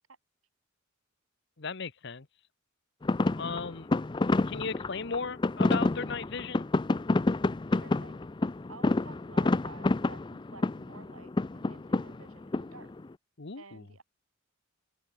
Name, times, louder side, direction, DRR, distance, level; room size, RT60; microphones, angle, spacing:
voice 1, 1.6-2.3 3.4-3.9 4.5-6.7 13.4-13.8, left 5 dB, 55° left, 1.0 m, -36 dB
sound 1, 3.0-13.1, left 2 dB, 20° left, 0.4 m, -28 dB
voice 2, 7.7-8.3 8.7-12.9 13.5-14.0, right 3 dB, 90° right, 5.0 m, -52 dB
open air
head